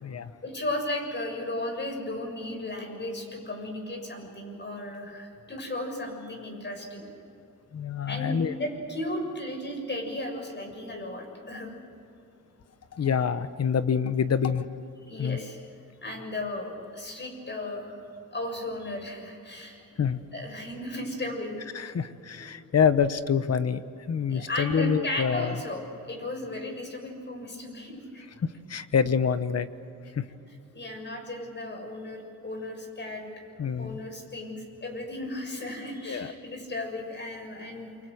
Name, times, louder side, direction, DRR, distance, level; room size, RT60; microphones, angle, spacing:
voice 1, 0.4-7.1 8.1-11.8 15.1-15.6 16.0-18.0 18.3-19.9 20.3-21.7 22.4-22.5 24.3-28.2 30.7-33.2 33.8-37.9, left 1 dB, 35° left, 3 dB, 6.8 m, -35 dB
voice 2, 7.7-8.5 12.9-14.7 15.2-15.4 20.0-20.2 21.7-23.8 24.1-25.6 28.4-29.7 30.1-30.3 33.6-34.0 36.1-36.3, left 7 dB, 50° left, 12 dB, 1.2 m, -26 dB
28.0 x 25.5 x 6.5 m, 2.7 s
cardioid pair, 110°, 32 cm